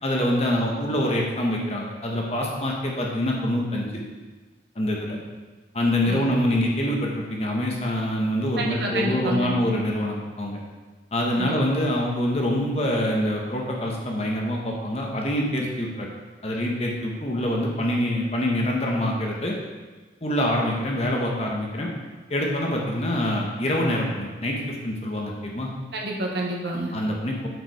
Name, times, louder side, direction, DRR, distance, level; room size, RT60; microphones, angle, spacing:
voice 1, 0.0-3.9 4.7-5.2 5.7-10.6 11.1-16.1 16.4-19.5 20.2-21.9 22.3-25.7 26.9-27.5, left 1 dB, 35° left, -1 dB, 1.1 m, -25 dB
voice 2, 8.6-9.5 11.4-11.6 25.9-26.9, right 1 dB, 65° right, -1 dB, 1.2 m, -28 dB
8.0 x 4.9 x 4.7 m, 1.3 s
head